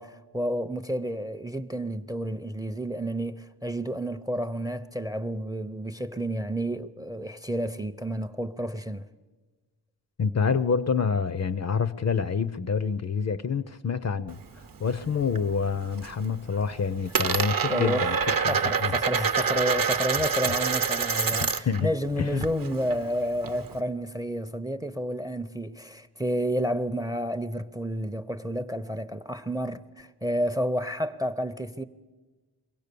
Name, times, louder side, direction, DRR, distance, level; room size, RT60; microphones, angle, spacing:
voice 1, 0.0-9.1 17.7-18.1 18.5-31.8, equal, 10° right, 0.5 m, -30 dB
voice 2, 10.2-14.4 14.8-18.2 18.4-18.9 21.3-21.9 22.2-22.4, left 6 dB, 40° left, 0.5 m, -27 dB
Coin (dropping), 14.3-15.4 15.7-16.2 16.5-21.8 22.1-23.8, right 6 dB, 55° right, 0.9 m, -27 dB
23.5 x 16.5 x 6.8 m
wide cardioid pair, 115°, 40 cm